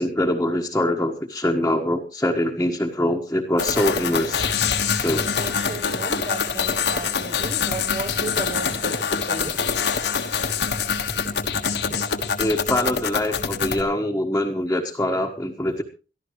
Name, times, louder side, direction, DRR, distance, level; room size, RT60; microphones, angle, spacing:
voice 1, 0.0-4.5 5.0-5.3 12.4-15.8, left 1 dB, 10° left, 1.4 m, -24 dB
sound 1, 3.6-13.8, left 6 dB, 80° left, 1.5 m, -25 dB
voice 2, 5.4-9.6 11.9-12.0, right 2 dB, 35° right, 1.0 m, -34 dB
22.5 x 14.0 x 3.1 m
head